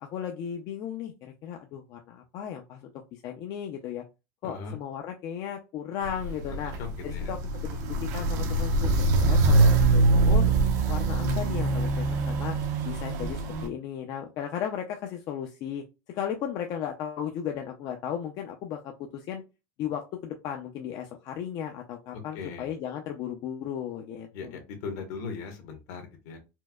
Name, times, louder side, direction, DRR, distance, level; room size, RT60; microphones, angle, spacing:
voice 1, 0.0-4.0 4.4-6.7 7.0-10.5 10.9-12.6 12.8-15.8 16.1-19.4 19.8-24.6, left 9 dB, 40° left, 3 dB, 0.5 m, -35 dB
voice 2, 4.4-4.8 6.5-7.4 22.3-22.7 24.3-26.4, left 5 dB, 65° left, 4 dB, 1.2 m, -39 dB
Walk footsteps, 6.0-13.7, right 2 dB, 75° right, 0.8 m, -24 dB
4.4 x 2.1 x 2.3 m, 0.27 s
supercardioid pair, 150°, 10 cm